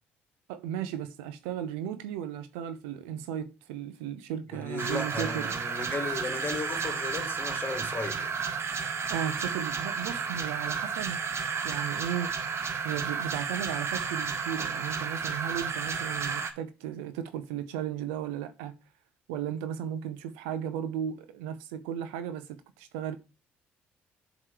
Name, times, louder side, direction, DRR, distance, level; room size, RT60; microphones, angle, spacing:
voice 1, 0.5-5.6 9.1-11.2 11.6-12.3 12.8-18.7 19.3-23.2, right 9 dB, 80° right, 0.6 m, -35 dB
voice 2, 4.5-8.3, left 3 dB, 35° left, 2.0 m, -35 dB
sound 1, 4.8-16.5, right 5 dB, 45° right, 1.0 m, -32 dB
7.4 x 3.1 x 4.9 m
hypercardioid pair, 55°, 6 cm